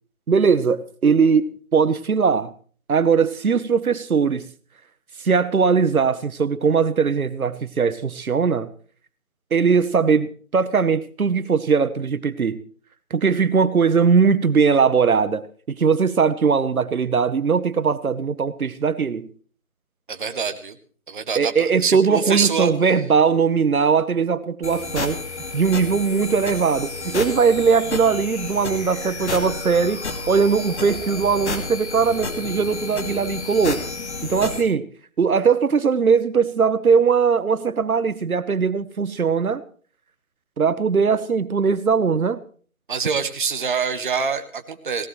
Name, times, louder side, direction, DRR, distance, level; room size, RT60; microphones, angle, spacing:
voice 1, 0.3-2.5 2.9-4.4 5.2-8.7 9.5-12.6 13.1-19.3 21.4-25.2 25.5-33.8 34.2-34.9 35.2-39.6 40.6-42.4, right 5 dB, 80° right, 1.1 m, -20 dB
voice 2, 20.1-20.7 21.1-22.7 42.9-45.1, right 6 dB, 35° right, 1.1 m, -25 dB
sound 1, 24.6-34.6, left 3 dB, 50° left, 2.6 m, -31 dB
20.0 x 17.5 x 3.2 m
figure-of-eight pair, 165°, 42 cm